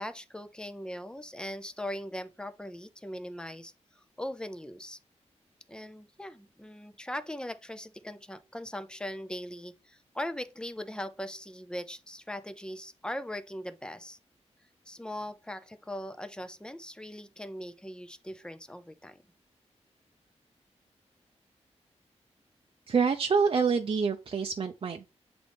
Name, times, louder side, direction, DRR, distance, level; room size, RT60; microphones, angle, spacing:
voice 1, 0.0-3.7 4.2-5.0 5.7-14.2 14.9-19.2, left 1 dB, 5° left, 0.6 m, -40 dB
voice 2, 22.9-25.1, right 5 dB, 50° right, 0.5 m, -26 dB
7.7 x 3.8 x 3.5 m
wide cardioid pair, 105°, 12 cm